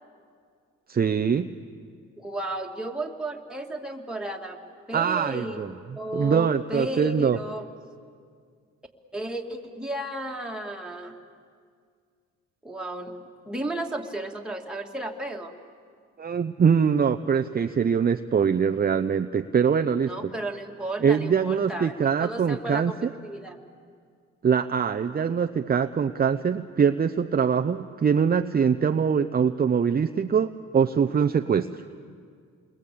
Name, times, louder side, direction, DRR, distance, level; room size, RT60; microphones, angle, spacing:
voice 1, 0.9-1.5 4.9-5.7 6.1-7.4 16.2-20.3 21.0-23.1 24.4-31.7, right 7 dB, 30° right, 8 dB, 0.7 m, -23 dB
voice 2, 2.2-4.6 4.9-7.7 9.1-11.1 12.6-13.2 13.4-15.5 20.1-21.9 22.2-22.9 23.2-23.6, right 1 dB, 5° right, 1 dB, 2.5 m, -33 dB
29.0 x 22.0 x 8.6 m, 2.1 s
cardioid pair, 90°, 30 cm